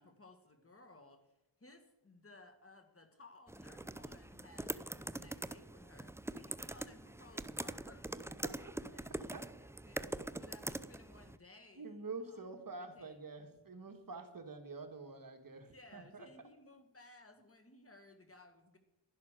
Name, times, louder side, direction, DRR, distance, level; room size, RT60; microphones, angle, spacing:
voice 1, 0.0-1.3 1.6-12.4 12.8-13.3 15.6-18.8, left 2 dB, 30° left, 6 dB, 1.8 m, -60 dB
sound 1, 3.5-11.4, right 1 dB, 5° right, 0.5 m, -44 dB
voice 2, 11.8-16.3, right 3 dB, 45° right, 6 dB, 1.9 m, -47 dB
11.5 x 11.5 x 6.6 m, 0.89 s
cardioid pair, 85°, 48 cm